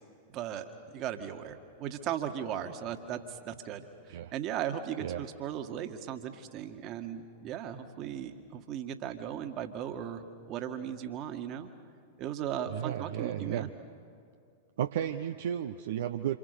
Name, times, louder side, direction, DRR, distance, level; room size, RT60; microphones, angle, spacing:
voice 1, 0.3-11.7 12.2-13.7, right 9 dB, 35° right, 7 dB, 1.9 m, -37 dB
voice 2, 12.7-13.7 14.8-16.4, right 10 dB, 60° right, 6 dB, 0.8 m, -33 dB
28.0 x 27.5 x 6.9 m, 2.5 s
figure-of-eight pair, 95°, 0 cm